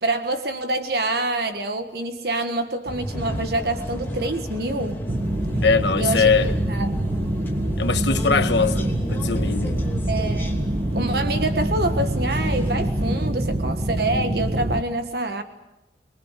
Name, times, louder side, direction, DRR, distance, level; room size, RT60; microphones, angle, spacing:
voice 1, 0.0-5.0 6.0-6.3 6.7-6.9 10.1-10.6 10.9-15.4, right 2 dB, 55° right, 1.6 m, -26 dB
sound 1, 2.9-13.3, equal, 10° left, 3.0 m, -31 dB
sound 2, 5.1-14.8, right 1 dB, 35° right, 1.2 m, -25 dB
voice 2, 5.6-6.5 7.8-9.8, left 5 dB, 75° left, 1.4 m, -21 dB
25.5 x 20.0 x 8.4 m
head